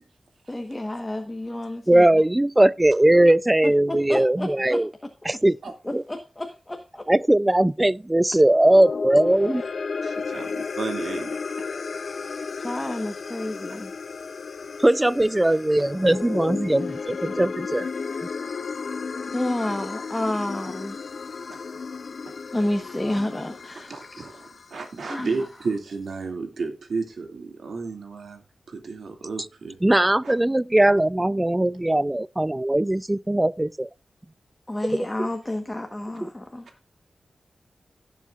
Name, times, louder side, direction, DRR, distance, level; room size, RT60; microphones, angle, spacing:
voice 1, 0.5-2.1 3.9-4.8 5.8-7.0 12.6-13.9 19.3-21.0 22.5-24.3 25.0-25.5 34.7-36.7, left 1 dB, 15° left, 1.2 m, -30 dB
voice 2, 1.9-4.9 5.3-5.6 5.9-6.0 7.1-9.6 14.8-17.9 29.8-33.9 35.2-35.3 36.2-36.3, right 1 dB, 15° right, 0.4 m, -20 dB
sound 1, 8.4-24.9, left 5 dB, 65° left, 0.5 m, -33 dB
voice 3, 10.0-11.3 15.5-15.6 23.8-29.8 30.2-30.3, right 4 dB, 85° right, 2.3 m, -32 dB
17.5 x 7.4 x 2.4 m
wide cardioid pair, 115°, 0 cm